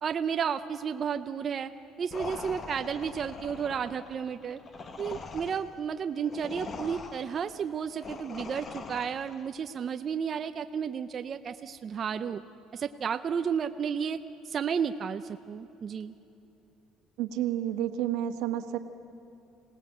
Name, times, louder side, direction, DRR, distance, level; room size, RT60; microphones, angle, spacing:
voice 1, 0.0-1.7 2.0-4.6 5.0-12.4 12.7-14.2 14.5-16.1, right 7 dB, 30° right, 8 dB, 0.5 m, -32 dB
sound 1, 2.1-9.5, left 4 dB, 25° left, 1.0 m, -42 dB
voice 2, 17.2-18.8, right 11 dB, 80° right, 7 dB, 1.5 m, -30 dB
27.0 x 18.5 x 7.7 m, 3.0 s
cardioid pair, 175°, 0 cm